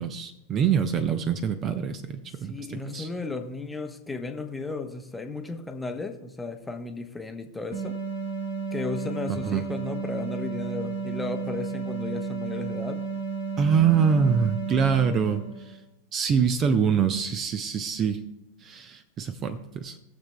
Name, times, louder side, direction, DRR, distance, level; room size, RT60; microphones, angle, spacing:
voice 1, 0.0-3.1 9.3-9.6 13.6-15.8 16.1-18.2 18.6-20.0, right 7 dB, 30° right, 10 dB, 0.6 m, -25 dB
voice 2, 2.5-8.0 8.7-13.0, left 3 dB, 10° left, 5 dB, 0.9 m, -34 dB
sound 1, 7.7-15.8, right 5 dB, 90° right, 2.2 m, -33 dB
20.5 x 7.2 x 2.3 m, 0.93 s
figure-of-eight pair, 90°, 0 cm